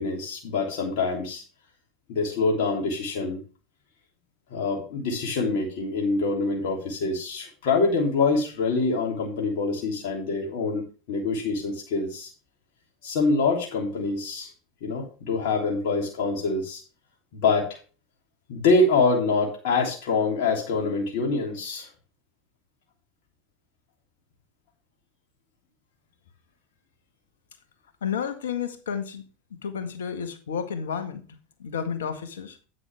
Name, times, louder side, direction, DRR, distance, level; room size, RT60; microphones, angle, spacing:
voice 1, 0.0-1.4 2.1-3.4 4.5-12.3 13.0-14.5 14.8-16.8 17.3-17.8 18.5-21.9, left 3 dB, 65° left, -1 dB, 3.2 m, -25 dB
voice 2, 28.0-29.2 29.6-31.2 31.6-32.6, left 7 dB, 80° left, 8 dB, 1.7 m, -31 dB
9.7 x 9.3 x 3.5 m, 0.35 s
hypercardioid pair, 85°, 0 cm